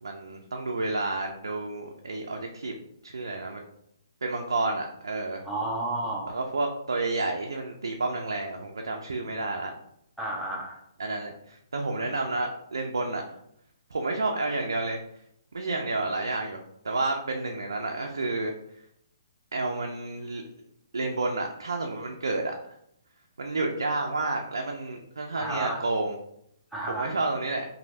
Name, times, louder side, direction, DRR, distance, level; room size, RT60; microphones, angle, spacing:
voice 1, 0.0-2.7 3.0-3.6 4.2-5.4 6.3-9.7 11.0-13.2 13.9-15.0 15.5-18.5 19.5-20.4 20.9-22.5 23.4-26.2 27.0-27.7, right 2 dB, 85° right, 2 dB, 0.4 m, -30 dB
voice 2, 5.4-6.3 10.2-10.8 25.4-25.8 26.7-27.1, right 2 dB, ahead, -5 dB, 0.8 m, -31 dB
3.0 x 2.6 x 2.7 m, 0.74 s
hypercardioid pair, 135°, 2 cm